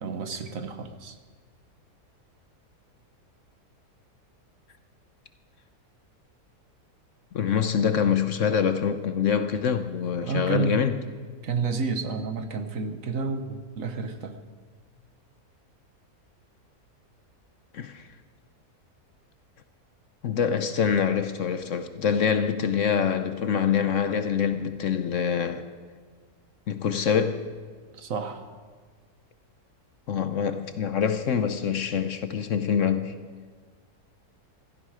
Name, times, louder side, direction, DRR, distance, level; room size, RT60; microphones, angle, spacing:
voice 1, 0.0-1.2 10.2-10.9 11.4-14.3 24.5-24.6 27.9-28.5, right 4 dB, 60° right, 1.4 m, -30 dB
voice 2, 7.3-11.0 17.7-18.1 20.2-25.7 26.7-27.5 30.1-33.1, left 7 dB, 60° left, 1.0 m, -25 dB
16.0 x 14.5 x 4.9 m
omnidirectional pair, 1.7 m